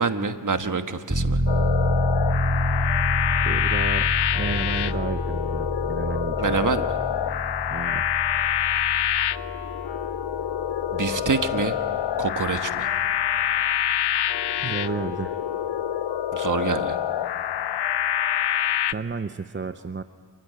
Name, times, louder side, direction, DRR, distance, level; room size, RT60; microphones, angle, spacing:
voice 1, 0.0-1.4 6.4-6.9 10.9-11.8 12.2-12.9 16.3-17.0, right 5 dB, 45° right, 9 dB, 1.4 m, -26 dB
sound 1, 1.1-13.6 14.0-14.1, equal, 15° right, 4.4 m, -28 dB
sound 2, 1.5-18.9, left 10 dB, 75° left, 0.7 m, -26 dB
voice 2, 3.4-4.1 4.3-6.7 7.7-8.1 13.8-13.9 14.6-15.4 18.9-20.0, right 4 dB, 30° right, 11 dB, 0.6 m, -32 dB
26.5 x 16.0 x 9.8 m, 2.1 s
cardioid pair, 70°, 42 cm